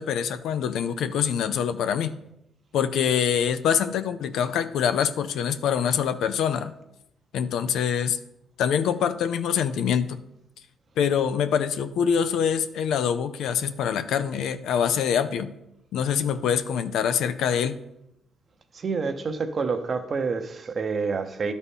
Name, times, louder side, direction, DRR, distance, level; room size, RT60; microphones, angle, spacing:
voice 1, 0.0-2.2 2.7-6.7 7.3-8.2 8.6-10.2 11.0-15.5 15.9-17.8, left 8 dB, 80° left, 11 dB, 0.4 m, -25 dB
voice 2, 18.7-21.5, right 4 dB, 45° right, 8 dB, 0.7 m, -28 dB
11.0 x 4.1 x 3.6 m, 0.84 s
cardioid pair, 90°, 0 cm